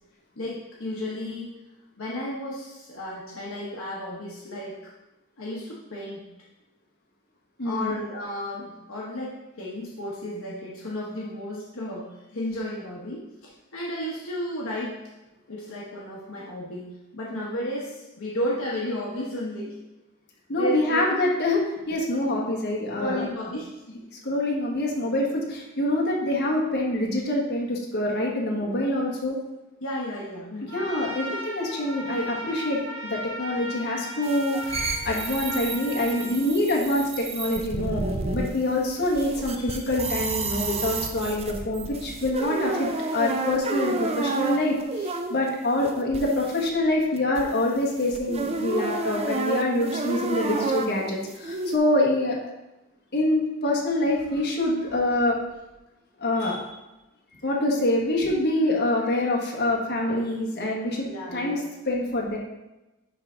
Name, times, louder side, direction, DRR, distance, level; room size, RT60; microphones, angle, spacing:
voice 1, 0.4-1.5 2.0-4.9 5.4-6.3 7.6-15.0 15.5-19.8 20.5-21.0 22.9-23.7 29.8-30.7 61.0-61.6, equal, 65° left, -5 dB, 1.2 m, -33 dB
voice 2, 7.6-8.0 20.5-23.2 24.2-29.4 30.7-38.0 38.3-52.4 53.1-55.4 56.2-56.8 57.4-61.6 61.8-62.4, left 1 dB, 50° left, -2 dB, 1.5 m, -25 dB
Trumpet, 30.7-36.4, equal, 65° right, 1.9 m, -36 dB
sound 1, 34.2-45.5 45.8-46.7 47.2-47.4 48.0-51.8, right 3 dB, 30° right, 0.5 m, -30 dB
10.5 x 3.5 x 3.9 m, 0.99 s
head